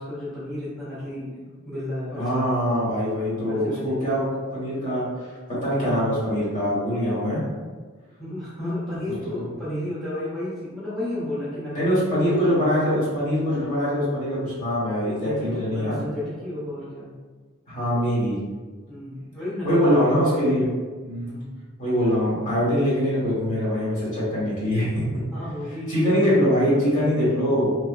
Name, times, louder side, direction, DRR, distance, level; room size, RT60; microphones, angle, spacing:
voice 1, 0.0-2.6 3.5-4.3 8.2-12.6 15.2-17.1 18.9-20.1 21.3-21.5 25.3-26.4, left 1 dB, ahead, -12 dB, 0.8 m, -32 dB
voice 2, 2.1-4.2 4.5-5.0 5.6-7.4 9.3-9.4 11.7-16.0 17.7-18.4 19.6-20.7 21.0-21.3 21.8-24.9 25.9-27.8, equal, 35° left, -9 dB, 1.4 m, -23 dB
3.0 x 2.6 x 2.4 m, 1.4 s
head